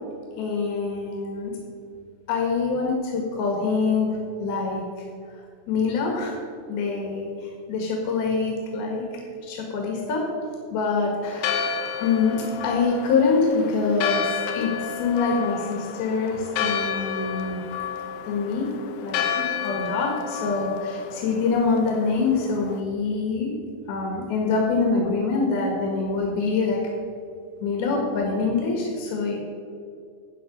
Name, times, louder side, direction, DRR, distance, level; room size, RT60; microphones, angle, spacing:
voice 1, 0.4-1.5 2.3-4.1 4.4-4.8 5.7-6.4 6.7-9.1 9.4-10.3 10.7-17.6 18.3-18.7 19.0-23.5 23.9-26.8 27.6-29.4, left 4 dB, 90° left, 0 dB, 3.6 m, -25 dB
Church bell, 11.2-22.8, left 7 dB, 70° left, 2.0 m, -31 dB
13.0 x 8.7 x 5.3 m, 2.4 s
omnidirectional pair, 4.2 m